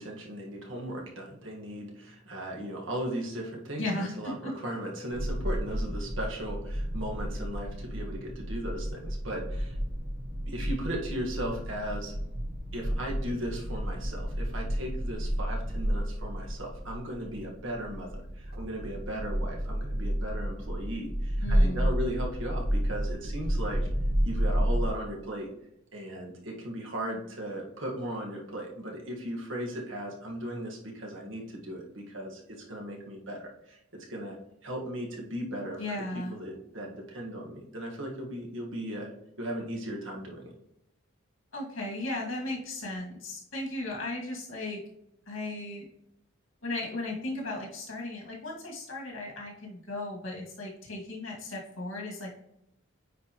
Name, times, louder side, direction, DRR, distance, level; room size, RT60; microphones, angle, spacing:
voice 1, 0.0-9.8 10.5-12.1 12.7-23.9 24.2-25.5 25.9-33.8 34.1-35.8 36.3-39.1 39.4-40.5, right 1 dB, 70° right, -1 dB, 1.6 m, -37 dB
voice 2, 3.8-4.5 21.4-21.9 35.8-36.4 41.5-44.8 45.3-45.9 46.6-52.3, left 2 dB, 85° left, -2 dB, 2.1 m, -36 dB
sound 1, 5.1-24.9, equal, 50° right, 0.9 m, -31 dB
9.2 x 4.3 x 3.0 m, 0.82 s
head